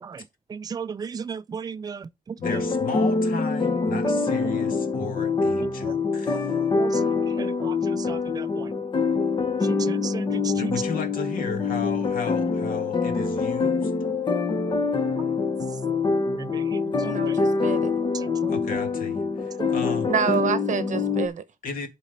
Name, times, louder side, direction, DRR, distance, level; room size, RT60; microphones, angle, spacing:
voice 1, 0.5-2.0 6.8-6.9 7.4-7.7 8.1-8.5 9.9-10.2 10.6-10.7 16.4-16.5 16.7-16.8 18.4-18.5, right 6 dB, 25° right, 0.4 m, -34 dB
voice 2, 2.4-6.6 10.5-13.9 18.5-20.1 21.6-21.9, left 5 dB, 85° left, 2.1 m, -34 dB
sound 1, 2.4-21.3, left 4 dB, 35° left, 1.0 m, -25 dB
voice 3, 17.0-17.9 20.1-21.4, right 7 dB, 60° right, 0.9 m, -27 dB
11.5 x 4.1 x 5.2 m
wide cardioid pair, 175°, 14 cm